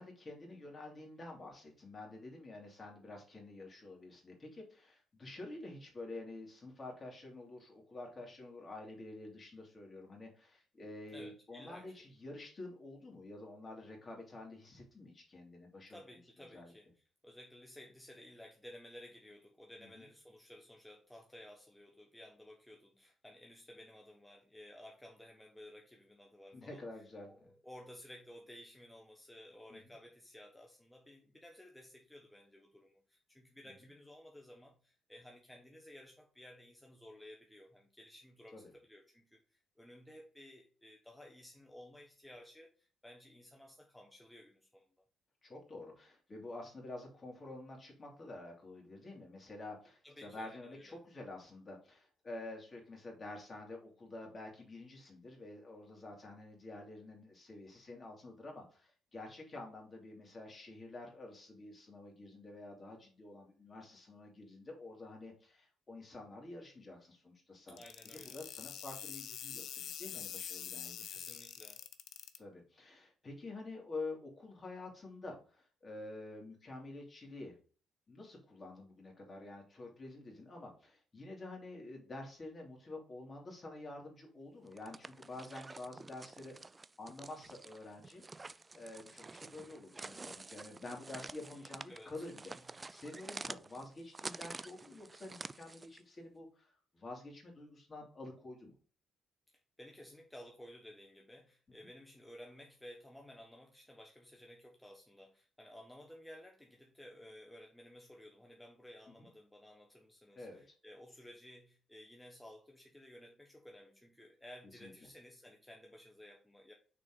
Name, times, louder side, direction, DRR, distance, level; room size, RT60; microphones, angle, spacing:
voice 1, 0.0-16.0 16.5-16.7 19.8-20.1 26.5-27.5 29.7-29.8 38.5-38.6 45.4-67.8 68.0-71.1 72.4-77.6 78.1-98.7 109.2-109.3 110.3-110.6 114.8-114.9, left 2 dB, 30° left, 0 dB, 2.7 m, -49 dB
voice 2, 11.1-12.0 15.9-45.0 50.0-51.0 67.7-68.4 71.1-71.8 91.5-92.1 92.5-92.9 99.8-116.7, left 1 dB, 5° left, 1 dB, 0.9 m, -55 dB
sound 1, 67.8-72.4, left 9 dB, 70° left, 0.6 m, -45 dB
sound 2, 84.7-96.0, right 3 dB, 25° right, 0.3 m, -49 dB
6.0 x 4.2 x 3.8 m, 0.41 s
cardioid pair, 90°, 0 cm